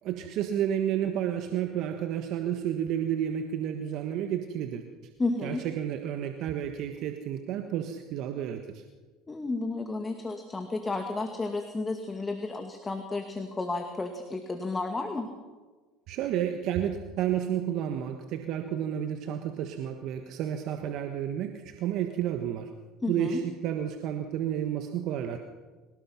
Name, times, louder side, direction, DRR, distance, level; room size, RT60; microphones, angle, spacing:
voice 1, 0.0-5.1 5.4-8.8 16.1-22.7 23.1-25.4, right 10 dB, 60° right, 7 dB, 1.4 m, -31 dB
voice 2, 5.2-5.6 9.3-15.3 23.0-23.4, left 3 dB, 20° left, 5 dB, 2.3 m, -32 dB
25.0 x 18.0 x 5.9 m, 1.3 s
hypercardioid pair, 80°, 0 cm